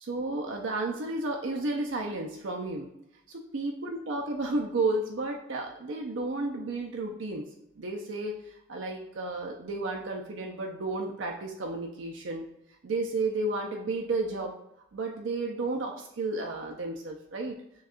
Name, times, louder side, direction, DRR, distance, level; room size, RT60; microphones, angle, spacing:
voice 1, 0.1-2.9 3.3-7.4 7.8-12.5 12.8-14.5 14.9-17.6, right 2 dB, 65° right, 1 dB, 0.5 m, -32 dB
6.2 x 2.3 x 2.4 m, 0.81 s
head